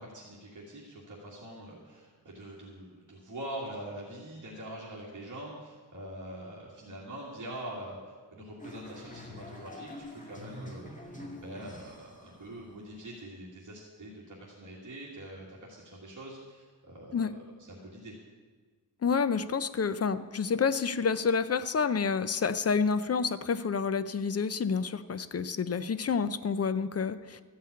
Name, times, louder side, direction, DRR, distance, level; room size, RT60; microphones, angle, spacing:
voice 1, 0.0-11.1 11.4-17.4 17.7-18.1, right 1 dB, 50° right, -4 dB, 2.0 m, -44 dB
sound 1, 8.6-13.1, left 1 dB, 20° left, 1.8 m, -46 dB
voice 2, 19.0-27.4, left 5 dB, 40° left, 13 dB, 0.5 m, -29 dB
13.5 x 5.7 x 8.3 m, 1.5 s
wide cardioid pair, 135°, 40 cm